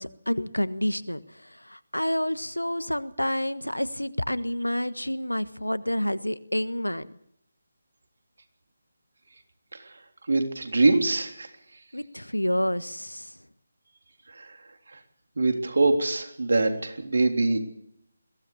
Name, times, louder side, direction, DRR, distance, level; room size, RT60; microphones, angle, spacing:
voice 1, 0.0-7.1 11.9-13.4, left 1 dB, 85° left, 14 dB, 1.4 m, -29 dB
voice 2, 10.3-11.5 14.4-14.5 15.4-17.6, right 3 dB, 55° right, 5 dB, 3.5 m, -23 dB
22.5 x 17.0 x 7.1 m, 0.74 s
figure-of-eight pair, 150°, 0 cm